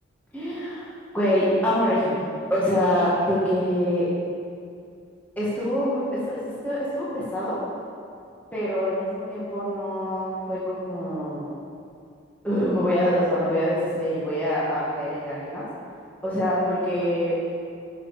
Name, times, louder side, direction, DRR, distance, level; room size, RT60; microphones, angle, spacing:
voice 1, 0.3-2.1 2.5-4.1 5.4-7.6 8.5-11.5 12.4-15.7 16.2-17.3, equal, 10° left, -9 dB, 1.9 m, -25 dB
11.5 x 6.9 x 5.0 m, 2.4 s
head